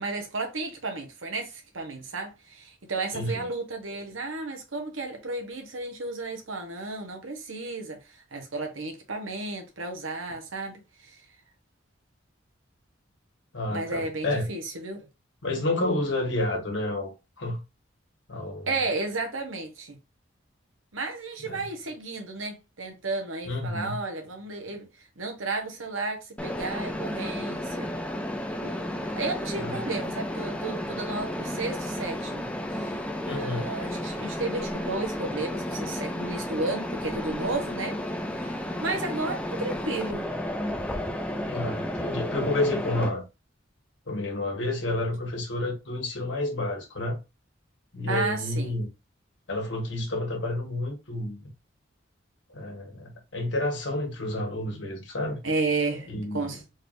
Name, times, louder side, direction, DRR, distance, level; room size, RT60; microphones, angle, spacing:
voice 1, 0.0-11.2 13.7-15.1 18.7-20.0 20.9-24.9 25.2-27.9 28.6-32.5 32.7-38.0 38.4-40.2 48.1-48.8 55.4-56.6, right 3 dB, 85° right, 1.3 m, -33 dB
voice 2, 3.1-3.5 13.5-14.5 15.4-17.6 18.3-18.7 21.4-21.7 23.4-24.0 24.7-24.8 29.6-29.8 33.2-33.7 41.5-43.2 44.1-47.2 47.9-48.9 49.5-51.5 52.5-55.4 56.1-56.6, left 2 dB, 65° left, 1.6 m, -30 dB
Mechanisms, 26.4-43.1, left 1 dB, 5° left, 0.5 m, -32 dB
4.1 x 3.5 x 2.6 m
head